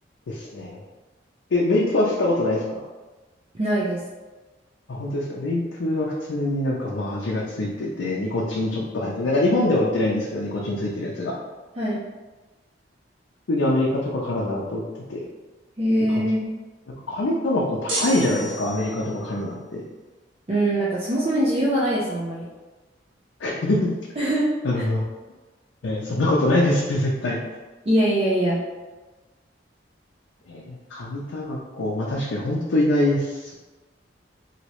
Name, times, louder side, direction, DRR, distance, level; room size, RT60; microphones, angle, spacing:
voice 1, 0.3-0.8 1.5-2.8 4.9-11.3 13.5-15.2 16.1-16.2 17.1-19.8 23.4-23.9 24.6-25.0 25.8-27.4 30.5-33.5, left 1 dB, 90° left, -4 dB, 0.5 m, -24 dB
voice 2, 3.5-4.0 11.8-12.0 15.8-16.5 20.5-22.5 24.2-24.5 24.8-24.9 27.9-28.6, right 1 dB, 35° right, -8 dB, 0.5 m, -22 dB
sound 1, 17.9-19.2, right 1 dB, 85° right, 0.9 m, -30 dB
3.0 x 2.8 x 2.9 m, 1.2 s
head